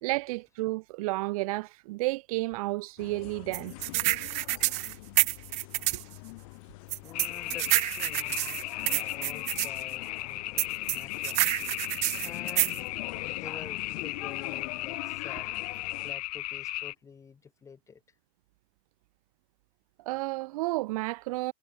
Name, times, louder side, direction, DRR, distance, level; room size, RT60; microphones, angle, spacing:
voice 1, 0.0-3.7 20.1-21.5, right 21 dB, 65° right, 0.8 m, -31 dB
sound 1, 3.0-16.1, left 26 dB, 60° left, 1.0 m, -44 dB
sound 2, 3.5-6.0 6.9-9.7 10.6-12.8, right 24 dB, 35° right, 0.4 m, -28 dB
voice 2, 6.3-15.5 16.0-18.0, left 6 dB, 15° left, 3.8 m, -49 dB
sound 3, 7.1-16.9, left 18 dB, 80° left, 1.0 m, -36 dB
supercardioid pair, 165°, 19 cm